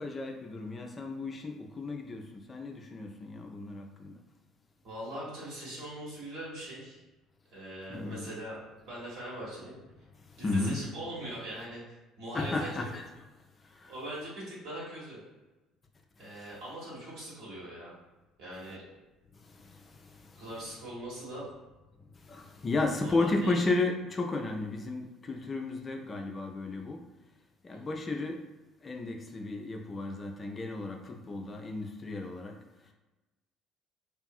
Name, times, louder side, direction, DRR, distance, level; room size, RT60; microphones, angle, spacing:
voice 1, 0.0-4.2 7.9-8.3 10.4-10.8 12.3-13.0 13.8-13.9 16.4-16.5 22.3-27.0 27.6-28.4 28.8-32.5, left 2 dB, 30° left, 3 dB, 0.3 m, -33 dB
voice 2, 4.8-7.0 7.5-8.6 8.8-9.8 10.4-12.9 13.9-15.2 16.2-17.9 18.4-18.8 20.4-21.5 23.0-23.6 27.7-27.9, right 1 dB, 60° right, -7 dB, 1.2 m, -41 dB
2.6 x 2.3 x 2.3 m, 1.1 s
figure-of-eight pair, 55°, 0 cm